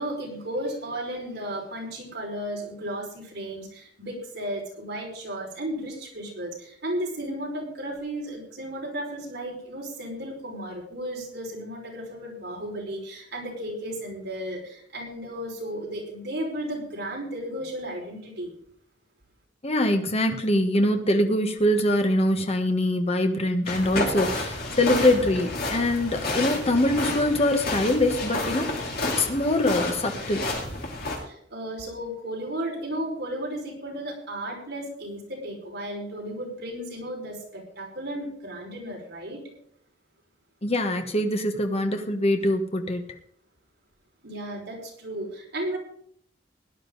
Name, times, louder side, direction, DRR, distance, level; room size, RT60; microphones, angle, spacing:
voice 1, 0.0-18.5 31.2-39.4 44.2-45.8, right 1 dB, 60° right, -2 dB, 5.4 m, -34 dB
voice 2, 19.6-30.5 40.6-43.0, left 1 dB, 35° left, 5 dB, 1.3 m, -23 dB
sound 1, 23.7-31.2, left 2 dB, 55° left, 3.3 m, -30 dB
17.0 x 11.5 x 4.0 m, 0.65 s
head